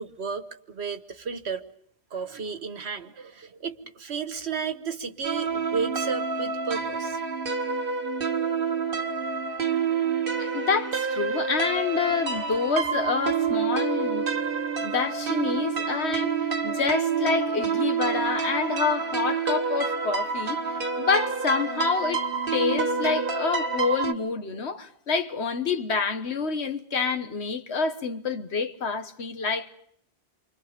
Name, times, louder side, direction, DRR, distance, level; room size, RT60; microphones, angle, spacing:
voice 1, 0.0-1.6 2.1-7.2, right 5 dB, 90° right, 1.5 m, -33 dB
sound 1, 5.2-24.1, right 5 dB, 55° right, 1.5 m, -28 dB
voice 2, 10.4-14.3 14.8-16.4 16.6-22.2 22.5-29.7, left 5 dB, 90° left, 1.6 m, -27 dB
29.0 x 25.0 x 5.2 m
omnidirectional pair, 1.1 m